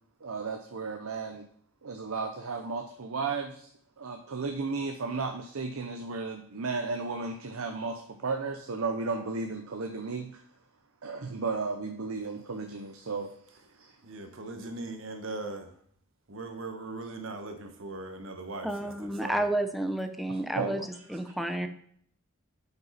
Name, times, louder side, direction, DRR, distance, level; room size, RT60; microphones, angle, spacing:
voice 1, 0.2-1.5 1.8-3.7 4.0-10.4 11.0-14.0 20.3-20.9, right 4 dB, 85° right, 5 dB, 0.7 m, -34 dB
voice 2, 14.0-15.7 16.3-19.4, right 2 dB, 65° right, 5 dB, 1.2 m, -39 dB
voice 3, 18.6-20.8 21.1-21.7, right 1 dB, ahead, 6 dB, 0.6 m, -30 dB
8.0 x 5.6 x 4.2 m, 0.63 s
head